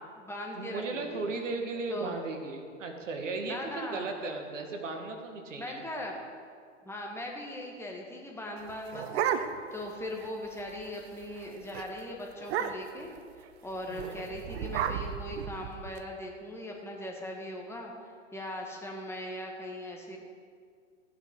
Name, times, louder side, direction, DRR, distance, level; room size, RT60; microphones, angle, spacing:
voice 1, 0.0-1.3 1.9-2.2 3.5-4.1 5.6-6.1 6.8-9.3 9.7-13.1 13.6-20.2, left 1 dB, 5° left, 0 dB, 1.8 m, -39 dB
voice 2, 0.6-5.8 13.9-14.2, right 3 dB, 70° right, 4 dB, 1.8 m, -36 dB
sound 1, 8.6-9.8 10.2-10.3 10.6-10.9 11.2-11.4 11.7-11.9 12.4-13.0 13.9-16.0, right 8 dB, 55° right, 0.8 m, -33 dB
14.5 x 9.4 x 3.9 m, 2.1 s
figure-of-eight pair, 105°, 38 cm